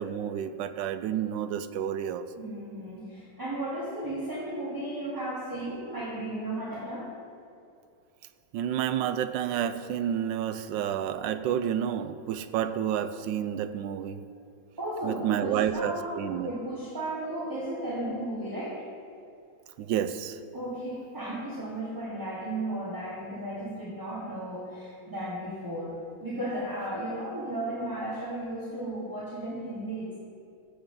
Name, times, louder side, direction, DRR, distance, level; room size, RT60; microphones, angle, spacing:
voice 1, 0.0-2.3 8.5-14.2 15.0-16.5 19.8-20.4, right 9 dB, 80° right, 11 dB, 1.2 m, -30 dB
voice 2, 2.4-7.1 14.2-14.4 14.8-18.9 20.5-30.2, right 1 dB, 10° right, -6 dB, 1.2 m, -35 dB
15.5 x 7.0 x 3.8 m, 2.6 s
omnidirectional pair, 2.0 m